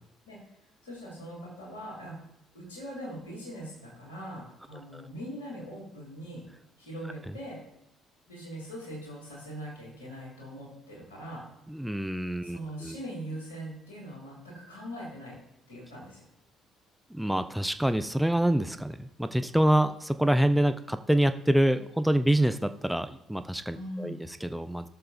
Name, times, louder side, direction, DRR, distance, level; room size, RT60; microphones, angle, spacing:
voice 1, 0.8-2.2 2.5-6.4 6.8-7.6 8.3-11.4 12.4-15.4 15.7-16.3 23.7-24.2, equal, 80° left, -3 dB, 2.8 m, -41 dB
voice 2, 11.7-13.0 17.1-24.9, right 1 dB, 5° right, 10 dB, 0.5 m, -26 dB
16.5 x 6.8 x 2.6 m, 0.82 s
figure-of-eight pair, 50°, 0 cm